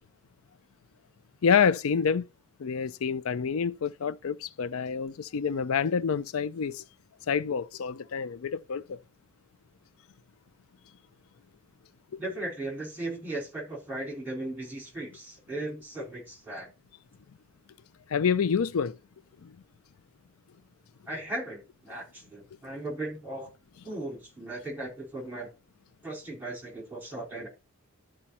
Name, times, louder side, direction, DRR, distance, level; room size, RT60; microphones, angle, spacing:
voice 1, 1.4-2.2 2.6-6.8 7.3-9.0 12.1-12.2 18.1-19.0 19.4-19.5, left 6 dB, 70° left, 0.4 m, -27 dB
voice 2, 12.2-16.7 21.1-23.5 23.8-25.5 26.0-27.5, right 2 dB, 10° right, 4.4 m, -37 dB
12.5 x 5.0 x 4.2 m
head